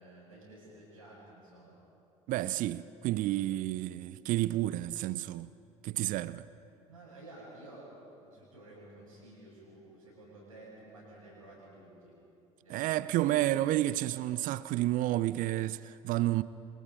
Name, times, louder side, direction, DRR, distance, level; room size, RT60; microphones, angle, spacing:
voice 1, 0.0-1.7 6.9-7.9 8.2-12.1 12.6-13.0, right 1 dB, 85° right, 7.5 m, -52 dB
voice 2, 2.3-5.5 5.8-6.5 12.7-16.4, right 15 dB, 50° right, 0.6 m, -30 dB
30.0 x 26.0 x 5.1 m
figure-of-eight pair, 60°, 17 cm